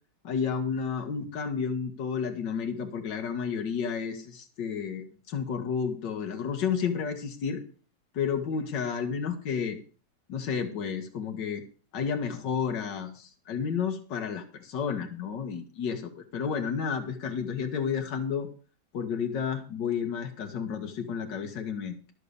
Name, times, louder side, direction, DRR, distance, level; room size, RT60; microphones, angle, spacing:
voice 1, 0.2-7.6 8.1-9.8 10.3-11.6 11.9-18.5 18.9-22.1, left 6 dB, 85° left, 4 dB, 1.8 m, -31 dB
12.5 x 6.5 x 6.8 m, 0.39 s
omnidirectional pair, 1.9 m